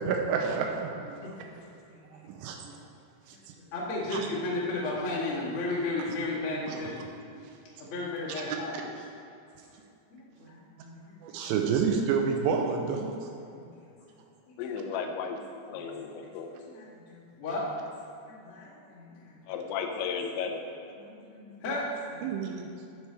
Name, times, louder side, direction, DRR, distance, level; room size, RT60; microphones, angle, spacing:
voice 1, 0.0-1.2 2.4-2.8 3.3-3.4 4.1-4.3 6.7-6.9 11.2-13.1 22.2-22.7, right 6 dB, 85° right, 2 dB, 2.9 m, -29 dB
voice 2, 1.2-1.6 1.9-2.0 3.6-7.1 7.8-8.7 10.1-11.2 13.5-13.7 15.7-15.9 16.7-17.7 18.3-19.3 21.0-22.2, left 2 dB, 40° left, -8 dB, 2.1 m, -34 dB
voice 3, 14.6-15.4 15.7-16.5 19.5-20.6, left 6 dB, 85° left, 3 dB, 3.1 m, -34 dB
12.0 x 8.0 x 3.4 m, 2.6 s
omnidirectional pair, 5.2 m